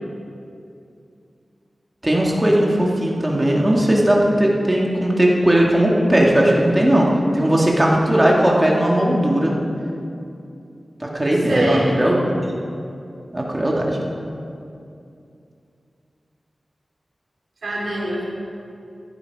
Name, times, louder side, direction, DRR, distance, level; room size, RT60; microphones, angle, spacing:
voice 1, 2.0-9.6 11.0-12.4 13.3-14.0, right 1 dB, 20° right, -2 dB, 2.3 m, -17 dB
voice 2, 11.5-11.9 17.6-18.2, right 1 dB, 80° right, -6 dB, 4.1 m, -24 dB
15.5 x 11.0 x 4.9 m, 2.6 s
wide cardioid pair, 75°, 0 cm